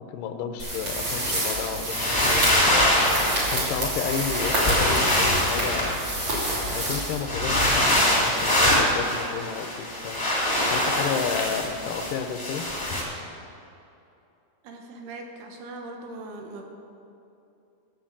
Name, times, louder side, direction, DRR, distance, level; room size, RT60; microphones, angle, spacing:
voice 1, 0.1-3.0 3.5-6.0 6.7-10.3 10.7-12.7, left 7 dB, 80° left, 6 dB, 1.9 m, -32 dB
sound 1, 0.6-7.7, right 1 dB, 35° right, 3.7 m, -28 dB
sound 2, 1.9-3.5 4.2-6.4 7.2-13.0, left 1 dB, 10° left, 1.7 m, -23 dB
voice 2, 14.6-16.6, right 2 dB, 80° right, 3 dB, 3.2 m, -40 dB
14.0 x 7.2 x 7.3 m, 2.7 s
omnidirectional pair, 4.6 m